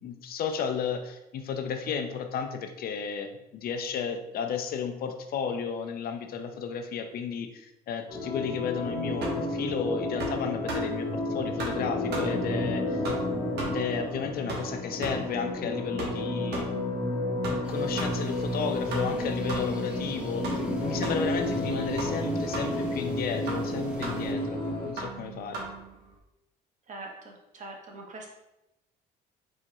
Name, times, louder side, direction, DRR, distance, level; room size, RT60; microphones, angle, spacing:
voice 1, 0.0-13.0 13.6-16.9 17.5-25.6, left 6 dB, 60° left, 6 dB, 0.6 m, -33 dB
sound 1, 8.1-24.9, left 1 dB, 25° left, 1.4 m, -31 dB
sound 2, 8.7-26.2, right 2 dB, 70° right, 1.3 m, -40 dB
sound 3, 17.6-24.3, right 1 dB, 5° right, 0.8 m, -49 dB
voice 2, 26.9-28.3, right 2 dB, 45° right, 1 dB, 1.2 m, -43 dB
4.7 x 4.3 x 2.4 m, 0.91 s
cardioid pair, 95°, 17 cm